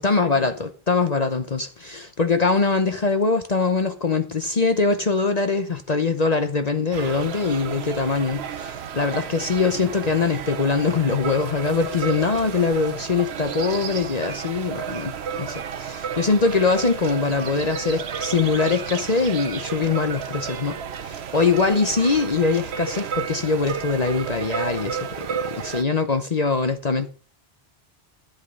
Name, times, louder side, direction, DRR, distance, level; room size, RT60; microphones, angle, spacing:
voice 1, 0.0-27.1, left 4 dB, 40° left, 0.9 m, -23 dB
sound 1, 6.9-25.8, right 7 dB, 85° right, 1.1 m, -32 dB
12.0 x 8.2 x 5.3 m
omnidirectional pair, 1.1 m